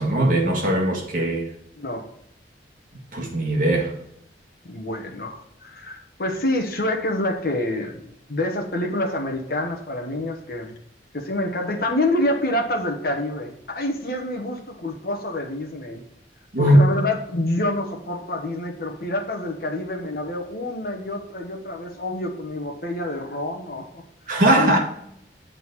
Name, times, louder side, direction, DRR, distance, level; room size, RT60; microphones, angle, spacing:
voice 1, 0.0-1.5 3.1-3.9 16.5-16.8 24.3-24.8, right 1 dB, 45° right, 1.8 m, -19 dB
voice 2, 1.8-2.1 4.7-8.0 8.3-10.8 11.1-16.0 16.6-24.0 24.6-24.8, left 1 dB, 55° left, 1.2 m, -27 dB
8.0 x 3.9 x 5.9 m
head